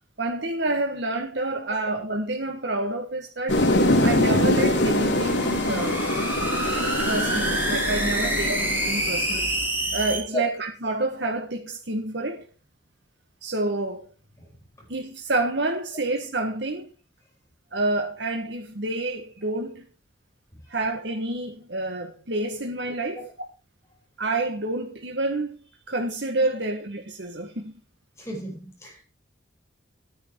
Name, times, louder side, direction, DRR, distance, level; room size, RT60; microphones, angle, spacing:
voice 1, 0.2-3.6 4.0-6.0 7.1-9.5 9.9-12.5 13.4-14.1 14.9-16.9 17.7-19.9 20.7-23.3 24.2-25.6 25.9-27.7, right 2 dB, 70° right, 1.7 m, -28 dB
sound 1, 3.5-9.6, left 1 dB, 80° left, 3.0 m, -24 dB
sound 2, 4.8-10.2, right 1 dB, 10° right, 3.5 m, -28 dB
voice 2, 6.9-7.4 9.8-9.9 10.3-10.4 14.4-14.5 14.8-14.9 20.5-20.6 23.1-23.3 28.2-29.0, equal, 15° left, 5.7 m, -35 dB
13.0 x 9.8 x 4.7 m
head